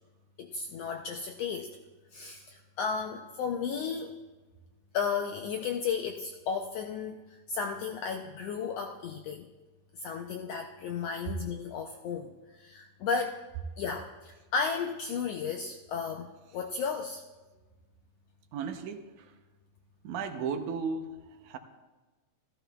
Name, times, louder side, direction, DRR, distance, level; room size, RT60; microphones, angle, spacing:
voice 1, 0.4-1.7 2.1-4.2 4.9-7.2 7.5-9.4 9.9-13.4 13.8-17.2, left 6 dB, 80° left, 3 dB, 1.4 m, -34 dB
voice 2, 18.5-19.0 20.0-21.6, right 5 dB, 85° right, 7 dB, 2.2 m, -35 dB
14.0 x 14.0 x 2.3 m, 1.2 s
omnidirectional pair, 3.5 m